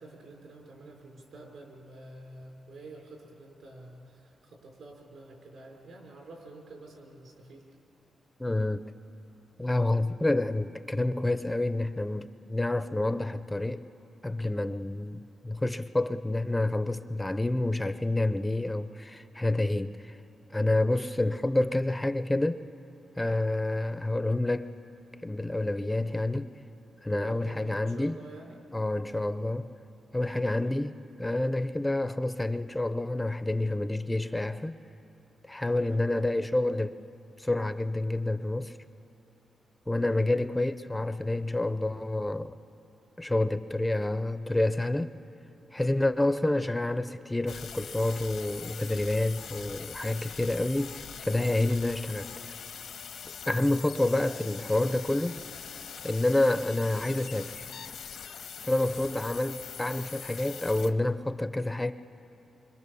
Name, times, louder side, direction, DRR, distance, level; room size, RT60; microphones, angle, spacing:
voice 1, 0.0-7.6 27.0-28.6 30.6-30.8 35.9-36.2 40.1-40.4 59.0-59.3, right 2 dB, 70° right, 0 dB, 5.4 m, -48 dB
voice 2, 8.4-8.9 9.6-13.9 14.2-20.2 20.5-22.6 23.2-24.7 25.2-26.5 27.0-28.2 28.7-29.7 30.1-34.8 35.5-37.0 37.4-38.8 39.9-42.6 43.2-45.1 45.7-52.5 53.5-55.4 56.0-57.7 58.6-61.9, left 2 dB, 10° left, 11 dB, 0.5 m, -28 dB
sound 1, 47.5-60.9, left 7 dB, 80° left, 1.1 m, -43 dB
26.0 x 25.0 x 6.9 m, 3.0 s
cardioid pair, 120°, 0 cm